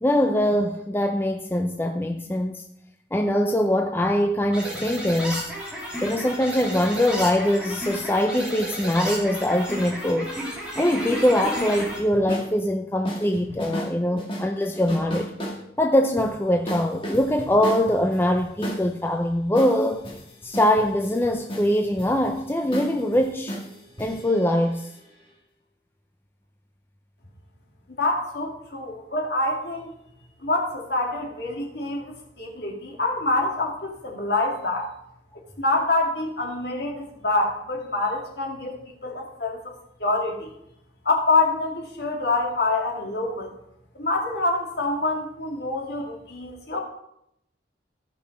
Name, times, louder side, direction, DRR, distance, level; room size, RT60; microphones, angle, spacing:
voice 1, 0.0-2.6 3.1-5.5 6.0-10.3 10.8-15.3 15.8-20.1 20.4-23.6 24.0-24.9, left 1 dB, 10° left, 0.5 m, -23 dB
sound 1, 4.5-12.0, equal, 5° right, 3.1 m, -33 dB
sound 2, 11.9-12.5 13.0-13.9 14.2-15.6 16.2-16.3 16.7-18.9 19.5-25.2, equal, 30° left, 2.2 m, -34 dB
voice 2, 27.9-29.9 30.4-34.9 35.6-39.7 40.0-40.5 41.0-43.5 43.9-46.8, left 2 dB, 60° left, 2.4 m, -26 dB
14.5 x 5.4 x 5.4 m
head